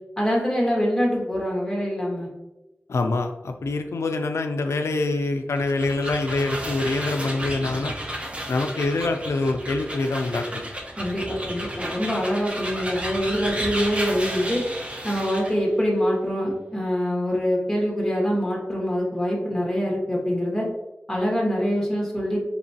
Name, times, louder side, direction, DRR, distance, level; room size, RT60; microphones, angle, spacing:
voice 1, 0.2-2.3 11.0-14.6 15.0-20.7 21.1-22.4, equal, 10° left, -2 dB, 1.4 m, -24 dB
voice 2, 2.9-7.9 8.5-10.5, left 3 dB, 90° left, 5 dB, 0.3 m, -25 dB
sound 1, 5.5-15.6, right 1 dB, 25° right, 0.7 m, -33 dB
4.6 x 2.9 x 2.7 m, 0.98 s
wide cardioid pair, 75°, 5 cm